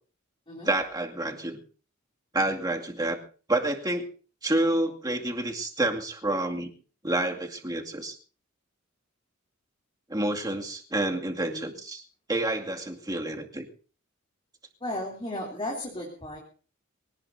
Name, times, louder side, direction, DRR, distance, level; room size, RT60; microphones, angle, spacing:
voice 1, 0.6-1.6 2.3-3.2 3.5-4.1 4.4-6.7 7.0-8.2 10.1-12.0 12.3-13.7, right 1 dB, 20° right, 1 dB, 2.3 m, -28 dB
voice 2, 14.8-16.4, left 1 dB, 25° left, -1 dB, 3.1 m, -35 dB
24.0 x 18.0 x 2.7 m, 0.38 s
head